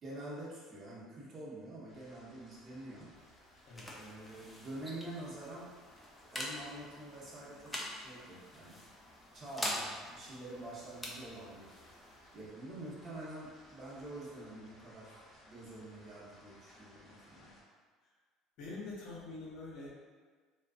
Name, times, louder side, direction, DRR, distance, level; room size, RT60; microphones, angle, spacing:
voice 1, 0.0-3.1 3.9-5.7 6.2-8.8 9.3-11.7 12.3-17.5, right 1 dB, 35° right, -6 dB, 0.8 m, -47 dB
sound 1, 1.9-17.6, left 1 dB, 35° left, 0.8 m, -61 dB
sound 2, 3.0-14.3, left 1 dB, 10° left, 0.4 m, -46 dB
voice 2, 3.7-4.0 18.6-19.9, left 3 dB, 65° left, -5 dB, 0.7 m, -45 dB
2.3 x 2.3 x 2.4 m, 1.5 s
supercardioid pair, 110°, 0 cm